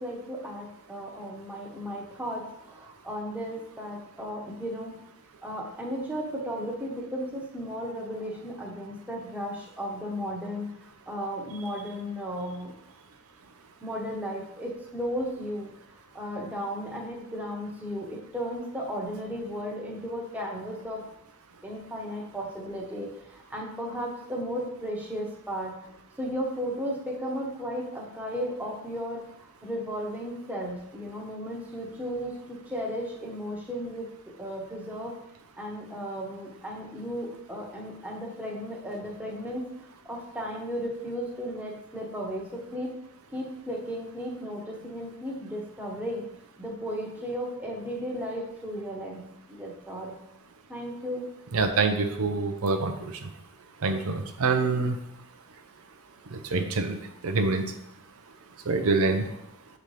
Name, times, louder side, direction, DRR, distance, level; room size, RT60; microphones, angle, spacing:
voice 1, 0.0-4.9 5.4-12.7 13.8-21.0 21.6-25.8 26.2-34.1 34.4-35.1 35.6-39.7 40.0-42.9 43.3-46.3 46.6-50.2 50.7-51.2, equal, 10° right, -2 dB, 1.0 m, -35 dB
voice 2, 51.5-53.1 53.8-55.0 56.3-57.0 57.2-57.6 58.7-59.3, right 3 dB, 80° right, 6 dB, 0.6 m, -25 dB
7.2 x 4.0 x 3.3 m, 0.81 s
head